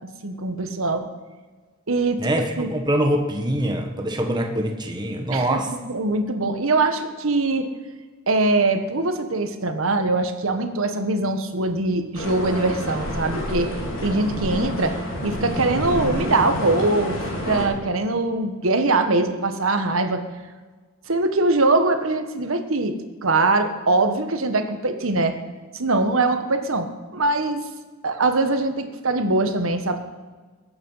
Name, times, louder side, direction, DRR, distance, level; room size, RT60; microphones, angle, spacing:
voice 1, 0.2-1.1 1.9-2.3 2.6-2.7 5.3-7.7 8.3-13.7 14.0-14.9 15.2-20.2 21.1-22.9 23.2-25.4 25.7-27.6 28.0-30.0, right 2 dB, 85° right, 7 dB, 1.4 m, -22 dB
voice 2, 2.2-5.7, right 1 dB, 20° right, 3 dB, 1.2 m, -24 dB
sound 1, 12.1-17.6, equal, 75° left, 4.1 m, -28 dB
21.5 x 8.7 x 5.7 m, 1.4 s
head